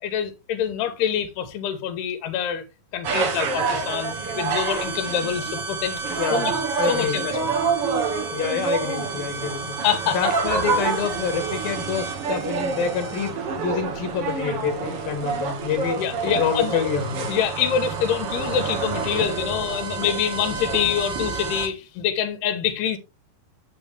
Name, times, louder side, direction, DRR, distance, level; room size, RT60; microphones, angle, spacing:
voice 1, 0.0-2.6 2.9-7.5 9.8-10.3 16.0-16.8 17.3-23.0, left 9 dB, 85° left, 3.3 m, -26 dB
sound 1, 3.0-21.7, right 5 dB, 55° right, 1.6 m, -27 dB
voice 2, 6.1-7.2 8.3-9.8 10.1-16.0 16.4-17.3, left 7 dB, 70° left, 2.9 m, -27 dB
8.7 x 7.5 x 3.4 m
omnidirectional pair, 4.6 m